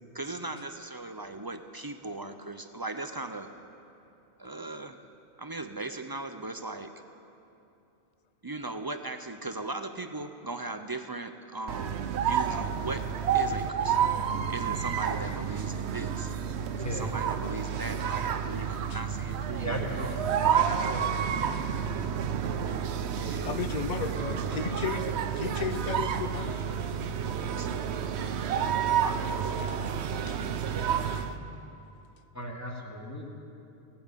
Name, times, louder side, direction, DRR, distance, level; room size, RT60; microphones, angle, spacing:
voice 1, 0.1-3.5 4.4-5.0 5.4-6.9 8.4-14.1 14.5-16.3 16.7-19.8 20.4-21.1 23.1-23.6 27.4-27.7 29.0-29.9, right 2 dB, 30° right, 8 dB, 0.4 m, -38 dB
sound 1, 11.7-31.4, right 8 dB, 75° right, 0.9 m, -30 dB
voice 2, 19.6-20.5 20.8-21.1 32.4-33.3, equal, 15° left, 0 dB, 1.8 m, -36 dB
voice 3, 23.3-26.6 30.3-30.4, left 7 dB, 50° left, 12 dB, 0.5 m, -34 dB
17.5 x 8.4 x 9.1 m, 2.8 s
omnidirectional pair, 1.1 m